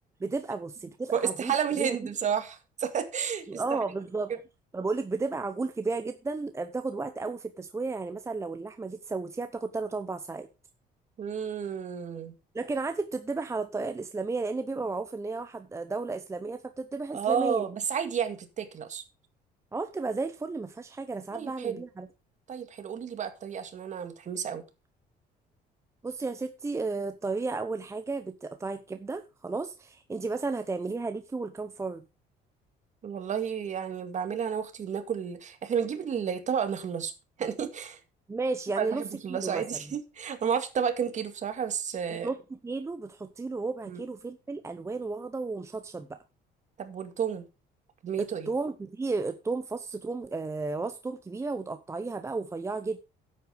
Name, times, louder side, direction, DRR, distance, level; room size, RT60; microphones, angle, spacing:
voice 1, 0.2-2.0 3.5-4.4 4.7-10.5 12.5-17.6 19.7-22.1 26.0-32.0 38.3-39.6 42.1-42.4 42.6-46.2 48.2-53.0, right 3 dB, 15° right, 9 dB, 0.8 m, -33 dB
voice 2, 1.1-3.8 11.2-12.3 17.1-19.0 21.3-21.8 22.5-24.6 33.0-37.1 37.4-38.0 38.8-42.3 43.9-44.0 46.8-47.4 48.0-48.5, right 7 dB, 45° right, 8 dB, 2.1 m, -31 dB
9.8 x 8.3 x 5.0 m, 0.29 s
cardioid pair, 110°, 17 cm